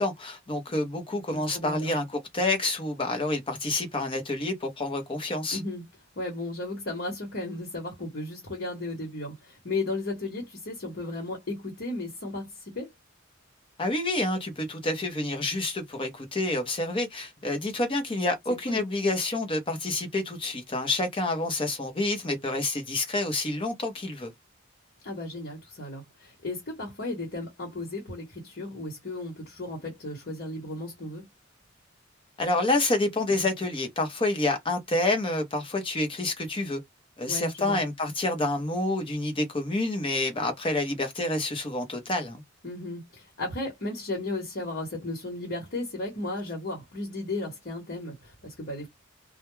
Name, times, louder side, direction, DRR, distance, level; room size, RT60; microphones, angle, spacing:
voice 1, 0.0-5.6 13.8-24.3 32.4-36.8 37.2-42.4, left 2 dB, 25° left, 0.7 m, -28 dB
voice 2, 1.3-1.9 5.5-5.8 6.2-12.9 18.7-18.8 25.0-31.3 37.3-37.8 42.6-48.9, left 2 dB, 55° left, 1.1 m, -35 dB
2.2 x 2.1 x 3.0 m
head